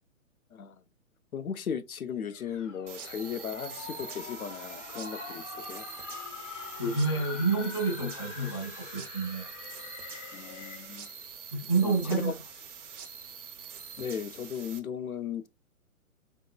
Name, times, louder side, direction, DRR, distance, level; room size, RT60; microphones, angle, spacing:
voice 1, 1.3-5.8 10.3-11.1 11.8-12.3 14.0-15.5, left 7 dB, 85° left, 0.6 m, -36 dB
sound 1, 2.3-11.1, left 5 dB, 60° left, 1.1 m, -44 dB
sound 2, 2.9-14.8, right 7 dB, 60° right, 0.9 m, -45 dB
voice 2, 6.8-9.5 11.5-12.4, right 3 dB, 20° left, 0.3 m, -29 dB
3.8 x 3.6 x 2.2 m
figure-of-eight pair, 130°, 42 cm